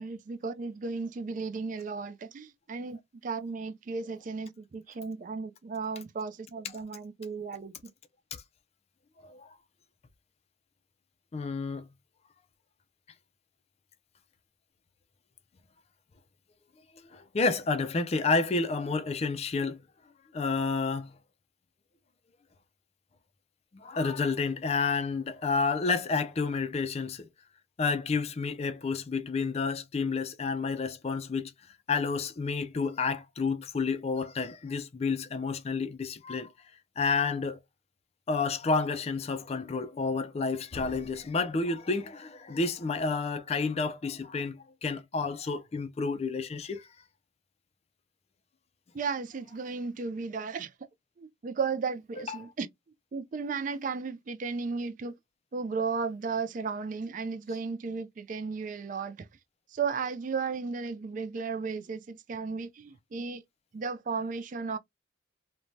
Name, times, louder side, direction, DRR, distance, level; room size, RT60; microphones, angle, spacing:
voice 1, 0.0-7.7 48.9-50.7 51.2-52.7 53.1-55.2 55.5-59.3 59.7-63.4 63.7-64.8, right 5 dB, 40° right, 0.3 m, -34 dB
voice 2, 9.2-9.5 11.3-11.9 17.0-19.8 20.3-21.1 23.7-27.3 27.8-31.5 31.9-36.5 37.0-37.6 38.3-46.9 52.3-52.5, left 4 dB, 30° left, 0.3 m, -30 dB
2.6 x 2.1 x 3.0 m
head